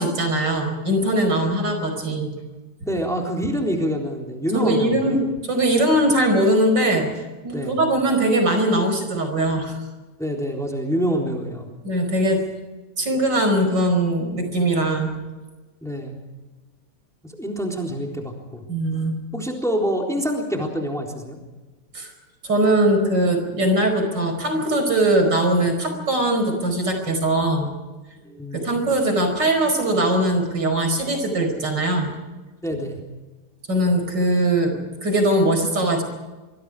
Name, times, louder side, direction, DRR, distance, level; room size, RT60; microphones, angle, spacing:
voice 1, 0.0-2.3 2.8-2.9 4.5-7.1 7.4-9.8 11.8-12.4 13.0-15.1 18.7-19.2 21.9-22.1 22.4-27.7 28.5-32.1 33.7-34.8 35.0-36.0, right 1 dB, 90° right, 5 dB, 5.6 m, -21 dB
voice 2, 2.9-5.2 7.5-7.8 10.2-11.7 15.8-16.2 17.2-18.6 19.3-21.4 28.2-28.7 32.6-33.0, equal, ahead, 0 dB, 3.7 m, -26 dB
25.5 x 24.5 x 5.0 m, 1.2 s
omnidirectional pair, 1.9 m